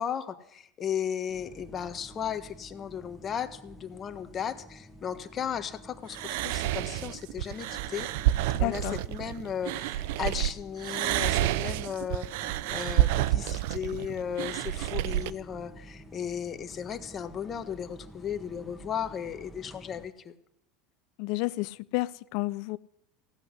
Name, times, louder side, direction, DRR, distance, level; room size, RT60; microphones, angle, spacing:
voice 1, 0.0-8.1 8.6-20.3, left 8 dB, 35° left, 9 dB, 1.4 m, -35 dB
sound 1, 1.3-20.1, equal, 5° left, 2.3 m, -50 dB
sound 2, 6.1-10.5 10.8-15.3, right 15 dB, 70° right, 0.5 m, -29 dB
voice 2, 8.5-9.0 21.2-22.8, left 21 dB, 65° left, 19 dB, 0.5 m, -31 dB
15.5 x 8.1 x 9.7 m, 0.77 s
hypercardioid pair, 95°, 0 cm